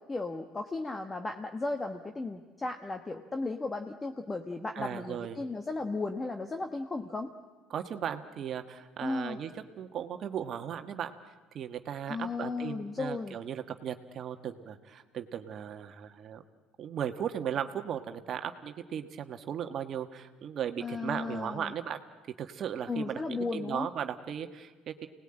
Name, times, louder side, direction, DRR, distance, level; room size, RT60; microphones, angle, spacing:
voice 1, 0.1-7.3 9.0-9.4 12.1-13.4 20.8-21.7 22.9-23.9, left 3 dB, 20° left, 5 dB, 1.3 m, -35 dB
voice 2, 4.7-5.4 7.7-11.1 11.5-16.4 16.8-22.0 22.4-25.1, right 9 dB, 50° right, 7 dB, 1.4 m, -37 dB
26.0 x 19.0 x 8.9 m, 1.3 s
supercardioid pair, 95°, 0 cm